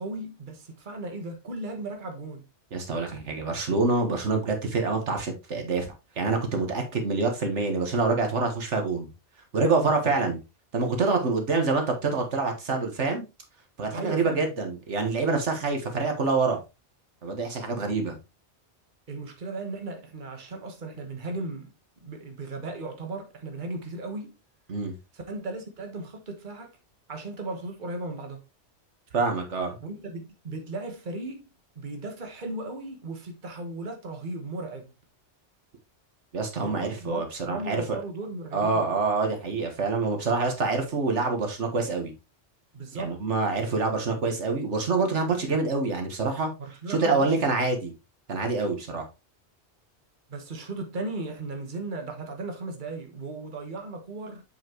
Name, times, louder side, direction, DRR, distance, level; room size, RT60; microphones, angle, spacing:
voice 1, 0.0-2.4 10.3-10.4 13.9-14.5 19.1-21.7 22.0-24.3 25.1-26.7 27.1-28.4 29.8-31.4 31.7-34.9 36.6-38.8 42.7-43.2 46.6-47.5 50.3-54.4, right 2 dB, 45° right, 1.5 m, -36 dB
voice 2, 2.7-5.9 6.2-9.1 9.5-10.4 10.7-13.3 13.8-16.6 17.2-18.2 24.7-24.9 29.1-29.8 36.3-38.0 38.5-42.1 42.9-46.5 46.9-47.9 48.3-49.1, right 3 dB, 80° right, 1.8 m, -26 dB
7.4 x 5.8 x 3.0 m
omnidirectional pair, 1.2 m